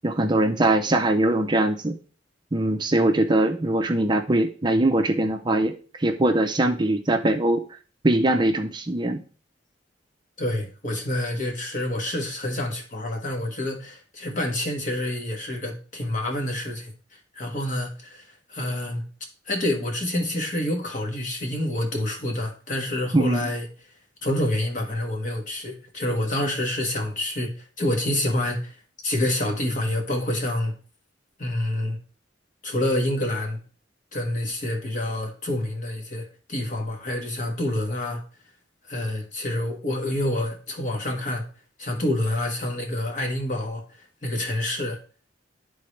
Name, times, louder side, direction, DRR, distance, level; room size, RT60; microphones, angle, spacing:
voice 1, 0.0-2.0 2.5-7.6 8.0-9.2 23.1-23.5, right 1 dB, 25° right, 0.5 m, -22 dB
voice 2, 10.4-16.9 17.3-19.0 19.5-23.7 24.2-28.8 29.0-30.7 31.4-32.0 32.6-33.6 34.1-38.2 38.9-41.4 41.8-45.0, left 1 dB, 45° left, 1.4 m, -27 dB
11.5 x 3.8 x 3.2 m
head